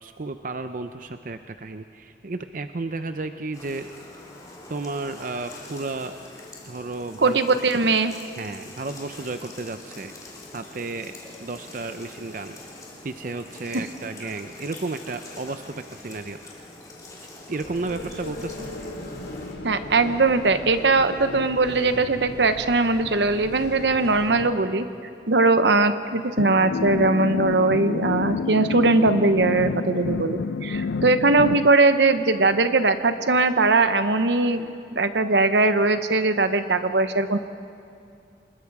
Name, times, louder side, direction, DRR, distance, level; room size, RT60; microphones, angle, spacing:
voice 1, 0.0-3.9 4.7-6.2 6.7-7.4 7.8-7.9 8.4-10.1 10.5-12.6 13.0-16.7 17.5-18.7, right 3 dB, 50° right, 8 dB, 0.6 m, -33 dB
sound 1, 3.5-19.5, left 2 dB, 20° left, 3.0 m, -44 dB
voice 2, 7.2-8.1 19.6-24.9 25.3-37.4, right 3 dB, 75° right, 10 dB, 1.0 m, -20 dB
sound 2, 17.6-24.5, left 1 dB, 70° left, 2.3 m, -38 dB
sound 3, 26.4-31.7, left 5 dB, 85° left, 0.4 m, -29 dB
27.0 x 20.5 x 4.8 m, 2.5 s
head